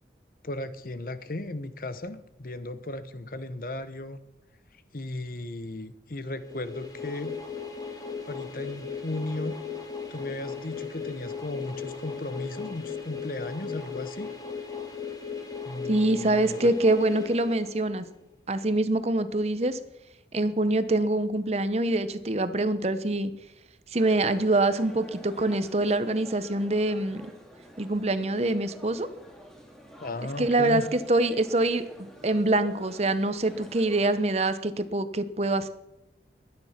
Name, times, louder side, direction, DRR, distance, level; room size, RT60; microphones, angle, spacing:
voice 1, 0.4-4.2 4.9-7.3 8.2-9.5 10.1-14.3 15.7-16.6 30.0-30.8, left 2 dB, 50° left, 12 dB, 0.9 m, -36 dB
sound 1, 6.4-18.2, left 5 dB, 20° left, 1.9 m, -37 dB
voice 2, 15.9-18.0 18.5-19.8 20.3-23.3 23.9-27.3 27.8-29.1 30.4-31.8 32.2-35.7, right 2 dB, 35° right, 12 dB, 0.9 m, -25 dB
sound 2, 24.0-34.2, equal, 5° left, 2.3 m, -49 dB
22.5 x 9.8 x 5.9 m, 0.91 s
head